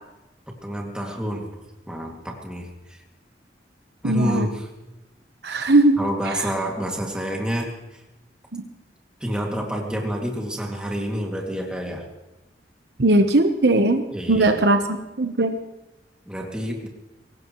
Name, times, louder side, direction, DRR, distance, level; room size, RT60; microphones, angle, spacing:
voice 1, 0.6-1.5 1.9-3.0 4.0-4.5 6.0-8.0 9.2-12.0 14.1-14.6 16.3-16.9, equal, 5° right, 0 dB, 2.4 m, -28 dB
voice 2, 4.0-4.5 5.4-6.5 8.5-8.6 13.0-15.5, right 2 dB, 60° right, 6 dB, 1.1 m, -19 dB
22.5 x 18.0 x 3.2 m, 1.0 s
head